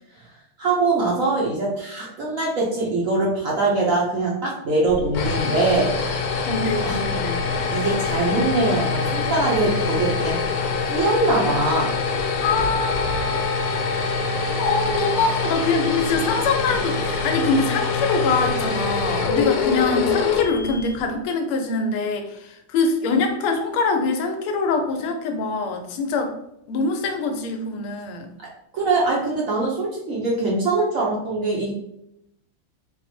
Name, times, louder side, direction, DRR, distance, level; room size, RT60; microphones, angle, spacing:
voice 1, 0.6-5.9 6.8-7.0 7.7-10.4 10.9-11.9 28.7-31.7, right 2 dB, 65° right, -4 dB, 0.8 m, -22 dB
sound 1, 4.9-21.1, left 4 dB, 70° left, 1.2 m, -24 dB
voice 2, 6.5-7.4 12.4-13.8 14.6-26.3 26.7-28.3, left 4 dB, 90° left, 5 dB, 1.6 m, -24 dB
4.3 x 2.0 x 4.3 m, 0.79 s
omnidirectional pair, 2.4 m